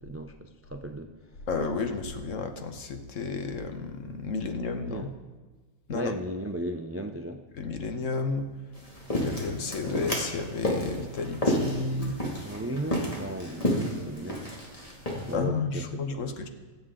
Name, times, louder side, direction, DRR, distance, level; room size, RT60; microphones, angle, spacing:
voice 1, 0.0-1.1 4.7-5.1 5.9-7.4 12.4-14.5 15.3-15.8 16.1-16.3, right 1 dB, 20° right, 6 dB, 0.3 m, -35 dB
voice 2, 1.5-5.1 5.9-6.2 7.5-8.5 9.2-12.2 15.3-16.5, left 4 dB, 65° left, 6 dB, 1.3 m, -32 dB
sound 1, 8.7-15.3, left 1 dB, 25° left, 2.3 m, -31 dB
23.0 x 7.9 x 3.8 m, 1.3 s
omnidirectional pair, 1.5 m